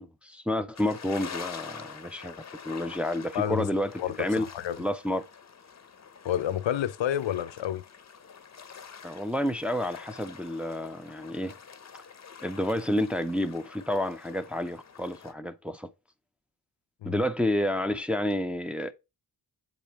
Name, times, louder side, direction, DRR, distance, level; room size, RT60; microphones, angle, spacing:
voice 1, 0.0-2.4 2.6-3.9 4.2-4.5 4.8-5.3 9.0-11.5 12.4-15.9 17.0-18.9, left 1 dB, 5° right, 0.5 m, -30 dB
sound 1, 0.8-15.3, left 6 dB, 40° left, 0.7 m, -46 dB
voice 2, 3.3-3.7 4.0-4.8 6.2-7.8 17.0-17.2, left 10 dB, 80° left, 0.6 m, -29 dB
7.9 x 5.2 x 2.9 m
cardioid pair, 70°, 44 cm